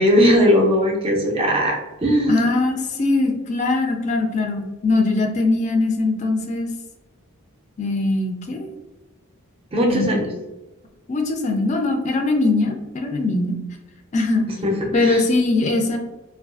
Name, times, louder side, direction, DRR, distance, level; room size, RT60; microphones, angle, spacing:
voice 1, 0.0-2.4 9.7-10.3 14.6-15.2, equal, 25° right, 0 dB, 0.5 m, -18 dB
voice 2, 2.3-6.7 7.8-8.7 9.9-10.1 11.1-13.5 14.1-14.5 14.9-16.0, left 2 dB, 35° left, 3 dB, 0.3 m, -21 dB
2.4 x 2.3 x 2.3 m, 1.0 s
head